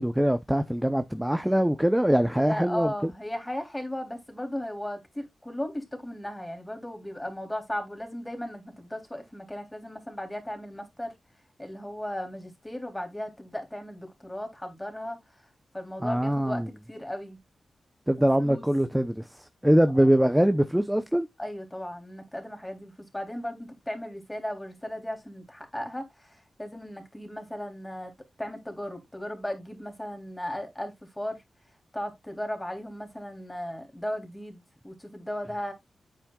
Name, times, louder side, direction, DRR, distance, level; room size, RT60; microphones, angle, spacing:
voice 1, 0.0-3.1 16.0-16.7 18.1-21.3, equal, 5° right, 0.7 m, -23 dB
voice 2, 2.3-11.1 11.6-15.2 15.7-17.4 18.2-18.6 19.9-20.1 21.4-28.1 28.4-31.4 31.9-35.7, left 1 dB, 10° left, 3.2 m, -36 dB
9.0 x 7.5 x 2.4 m
wide cardioid pair, 90°, 0 cm